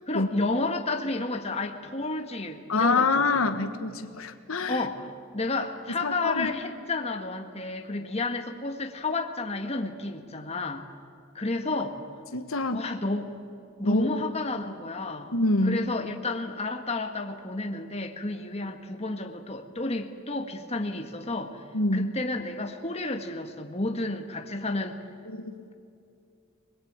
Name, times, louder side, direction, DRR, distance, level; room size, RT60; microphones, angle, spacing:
voice 1, 0.1-3.4 4.7-5.1 5.3-10.9 11.3-12.0 12.7-13.3 13.8-15.3 15.6-21.6 21.9-25.0, left 2 dB, 30° left, 4 dB, 1.7 m, -31 dB
voice 2, 2.7-4.9 5.9-6.5 12.3-12.8 13.8-14.1 15.3-15.8 21.7-22.1 25.3-25.6, left 2 dB, 90° left, 8 dB, 1.5 m, -26 dB
25.5 x 20.5 x 8.9 m, 2.5 s
head